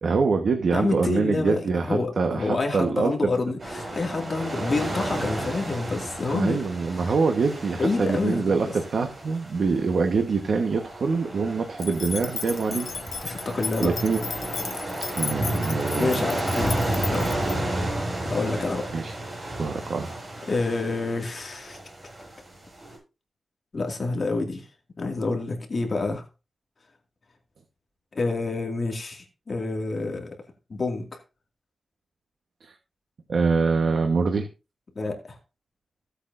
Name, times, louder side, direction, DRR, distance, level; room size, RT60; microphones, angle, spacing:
voice 1, 0.0-3.3 6.3-12.9 13.3-13.5 13.8-14.2 15.1-16.2 17.6-17.7 18.9-19.2 19.6-20.2 32.6-32.7 33.3-34.5, right 4 dB, 65° right, 5 dB, 1.3 m, -25 dB
voice 2, 0.7-6.6 7.0-7.1 7.8-8.5 13.2-13.9 15.9-16.8 17.1-17.3 18.3-18.8 20.5-21.8 23.7-24.7 25.0-26.2 28.1-30.4 30.7-31.2 35.0-35.4, left 3 dB, 40° left, 2 dB, 2.2 m, -28 dB
sound 1, 3.6-23.0, right 1 dB, 35° right, 7.7 m, -32 dB
sound 2, 11.8-17.6, left 5 dB, 65° left, 0.7 m, -35 dB
16.0 x 8.2 x 2.6 m, 0.29 s
wide cardioid pair, 160°, 0 cm